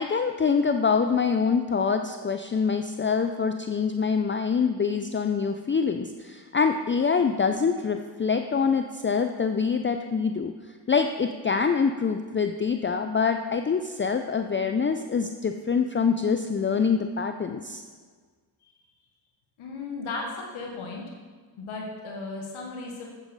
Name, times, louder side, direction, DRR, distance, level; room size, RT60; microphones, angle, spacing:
voice 1, 0.0-10.5 10.9-17.8, left 5 dB, 25° left, 7 dB, 0.5 m, -25 dB
voice 2, 19.6-21.0 21.6-23.1, left 3 dB, 85° left, 0 dB, 1.3 m, -35 dB
8.8 x 8.0 x 4.1 m, 1.5 s
supercardioid pair, 40°, 48 cm